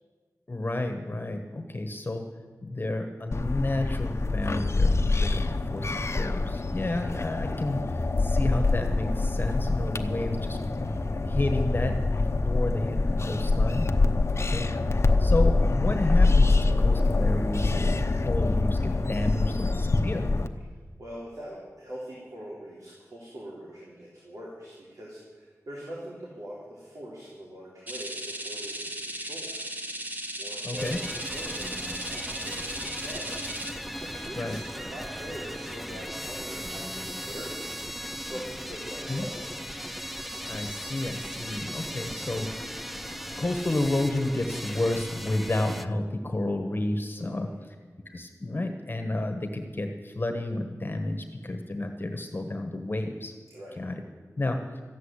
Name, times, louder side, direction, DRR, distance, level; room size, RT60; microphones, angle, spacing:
voice 1, 0.5-2.3 2.6-10.6 11.2-13.9 14.3-14.7 15.2-20.3 30.6-31.0 34.3-34.6 39.1-39.3 40.5-42.5 43.4-47.7 48.0-53.3 53.8-54.0 54.4-54.6, left 2 dB, 35° left, 5 dB, 1.3 m, -31 dB
sound 1, 3.3-20.5, left 3 dB, 50° left, 0.9 m, -25 dB
voice 2, 10.8-11.2 21.0-29.6 30.4-33.5 33.9-37.7 38.2-39.4 47.1-47.6 53.5-53.8, equal, 85° right, -5 dB, 3.4 m, -43 dB
sound 2, 27.9-33.7, right 1 dB, 30° right, 1.7 m, -36 dB
sound 3, 30.8-45.9, equal, ahead, 0.6 m, -37 dB
14.0 x 8.4 x 9.9 m, 1.4 s
wide cardioid pair, 85°, 6 cm